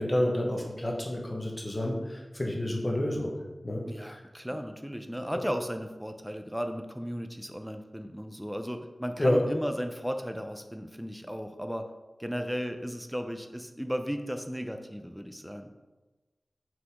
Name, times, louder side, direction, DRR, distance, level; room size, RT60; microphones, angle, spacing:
voice 1, 0.0-3.3 3.6-4.2 9.2-9.4, left 1 dB, 30° left, 0 dB, 1.2 m, -29 dB
voice 2, 3.9-11.9 12.2-15.7, equal, 5° right, 7 dB, 0.5 m, -35 dB
6.0 x 4.8 x 3.6 m, 1.2 s
wide cardioid pair, 55°, 0 cm